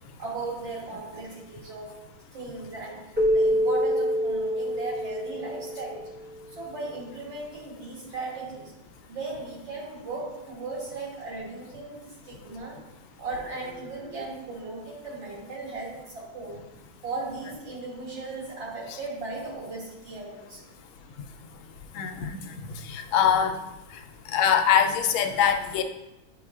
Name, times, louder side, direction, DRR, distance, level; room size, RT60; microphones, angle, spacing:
voice 1, 0.2-2.0 2.3-6.1 6.6-8.7 9.1-12.8 13.2-16.6 17.0-20.7 25.3-25.8, right 3 dB, 70° right, -7 dB, 3.1 m, -37 dB
Keyboard (musical), 3.2-6.4, equal, 15° right, 0.4 m, -26 dB
voice 2, 21.9-22.4 22.8-23.5 24.3-25.8, left 8 dB, 90° left, 6 dB, 1.4 m, -23 dB
9.5 x 4.2 x 2.4 m, 0.96 s
omnidirectional pair, 2.1 m